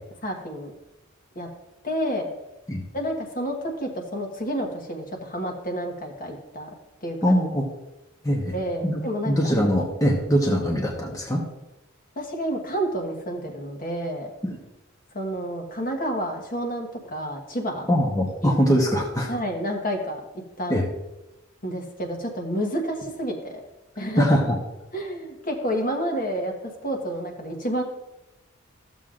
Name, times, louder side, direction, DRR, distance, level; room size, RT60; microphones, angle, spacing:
voice 1, 0.2-0.7 1.3-1.5 1.8-2.3 2.9-6.7 7.0-7.4 8.5-9.5 12.2-14.3 15.1-17.9 18.4-18.5 19.3-20.2 20.6-20.8 21.6-23.6 24.0-24.4 24.9-27.8, equal, 40° left, 2 dB, 1.3 m, -29 dB
voice 2, 7.2-7.7 8.2-8.5 8.8-11.4 14.4-14.6 17.9-19.3 20.7-20.8 24.2-24.5, equal, 15° left, -2 dB, 1.0 m, -22 dB
14.5 x 7.2 x 2.5 m, 0.97 s
head